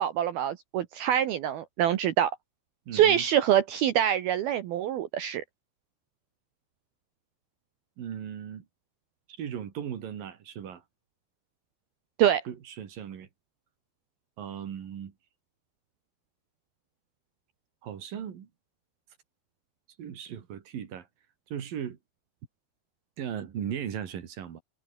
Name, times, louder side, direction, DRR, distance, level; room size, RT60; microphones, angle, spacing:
voice 1, 0.0-2.3 2.9-5.4 12.2-12.4, right 10 dB, 70° right, 2.4 m, -25 dB
voice 2, 2.9-3.3 8.0-8.7 9.4-10.8 12.5-13.3 14.4-15.1 17.8-18.5 20.0-21.1 21.5-22.0 23.2-24.6, right 9 dB, 50° right, 3.6 m, -37 dB
omnidirectional pair, 5.6 m